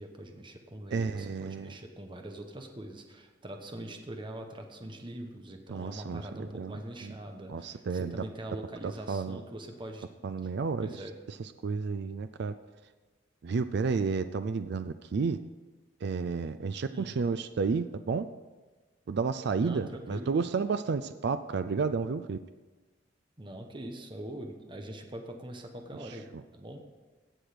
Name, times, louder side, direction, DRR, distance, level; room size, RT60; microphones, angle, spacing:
voice 1, 0.0-10.1 10.4-10.5 10.8-11.1 16.9-17.2 19.6-20.3 23.4-26.8, right 1 dB, 25° right, 4 dB, 1.0 m, -43 dB
voice 2, 0.9-1.7 5.7-6.8 7.0-7.1 7.5-8.2 8.8-9.4 10.2-10.9 11.6-12.5 13.4-15.4 16.0-18.3 19.1-22.4, right 5 dB, 60° right, 11 dB, 0.4 m, -31 dB
16.5 x 6.3 x 5.0 m, 1.2 s
head